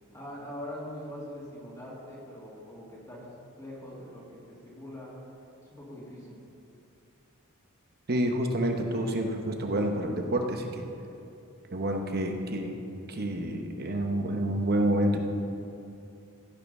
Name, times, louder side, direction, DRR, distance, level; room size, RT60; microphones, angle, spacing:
voice 1, 0.1-3.3 3.6-5.1 5.6-6.4, left 1 dB, 15° left, -7 dB, 2.1 m, -42 dB
voice 2, 8.1-10.9 11.7-12.8 13.1-15.2, right 1 dB, 45° right, 4 dB, 1.0 m, -28 dB
15.5 x 5.8 x 5.5 m, 2.6 s
head